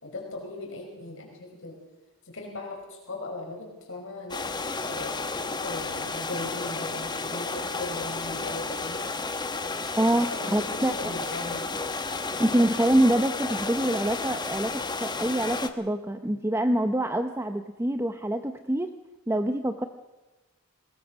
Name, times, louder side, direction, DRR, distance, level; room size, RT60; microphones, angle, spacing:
voice 1, 0.0-1.8 2.2-4.5 4.8-5.3 5.6-9.0 10.3-11.8, left 2 dB, 60° left, 0 dB, 5.1 m, -38 dB
sound 1, 4.3-15.7, left 3 dB, 20° left, 1.1 m, -32 dB
voice 2, 10.0-11.1 12.4-18.9 19.3-19.9, right 1 dB, 10° right, 7 dB, 0.8 m, -25 dB
21.5 x 21.0 x 6.3 m, 1.1 s
head